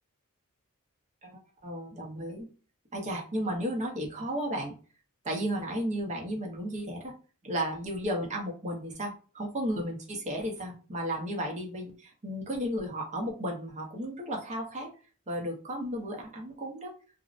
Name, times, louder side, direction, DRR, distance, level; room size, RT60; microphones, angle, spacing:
voice 1, 1.6-2.5 2.9-4.7 5.2-7.1 7.4-14.9 15.3-16.9, equal, 30° right, 1 dB, 0.6 m, -34 dB
2.5 x 2.0 x 2.4 m, 0.38 s
head